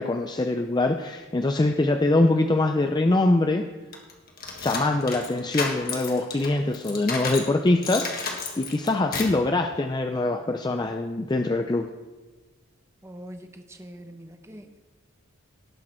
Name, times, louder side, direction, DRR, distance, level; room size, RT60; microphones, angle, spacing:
voice 1, 0.0-3.7 4.6-11.9, left 2 dB, 20° left, 6 dB, 0.4 m, -23 dB
sound 1, 3.9-7.5 7.8-9.4, left 4 dB, 45° left, 1.6 m, -32 dB
voice 2, 13.0-14.8, equal, 15° right, 6 dB, 0.7 m, -43 dB
18.5 x 6.4 x 4.4 m, 1.2 s
head